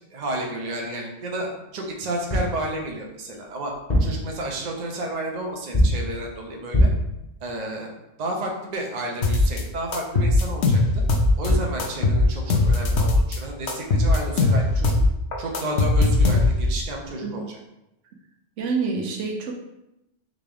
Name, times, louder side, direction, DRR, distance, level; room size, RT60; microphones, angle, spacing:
voice 1, 0.1-3.7 4.0-6.9 7.4-7.9 8.2-11.0 11.4-15.0 15.4-17.6, right 1 dB, 40° right, 0 dB, 0.7 m, -31 dB
sound 1, 2.3-2.6 3.7-4.3 5.7-6.1 6.7-7.1 11.2-11.3 11.5-11.8, equal, 35° left, 1.1 m, -21 dB
sound 2, 9.2-9.6 9.9-11.5 11.8-13.4 13.7-16.8, left 2 dB, 65° left, 0.9 m, -19 dB
voice 2, 18.6-19.5, right 4 dB, 75° right, 0 dB, 1.0 m, -27 dB
3.8 x 3.5 x 3.4 m, 0.88 s
omnidirectional pair, 1.3 m